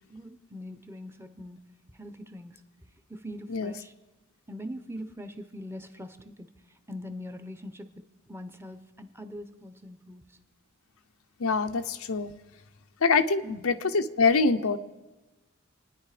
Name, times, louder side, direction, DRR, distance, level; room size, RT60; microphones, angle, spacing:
voice 1, 0.0-1.7 1.9-2.6 3.1-3.9 4.5-6.5 6.9-10.4 13.4-13.7, equal, 10° right, 9 dB, 0.9 m, -42 dB
voice 2, 11.4-12.3 13.0-14.8, left 4 dB, 90° left, 8 dB, 0.8 m, -24 dB
27.5 x 9.8 x 5.0 m, 1.1 s
head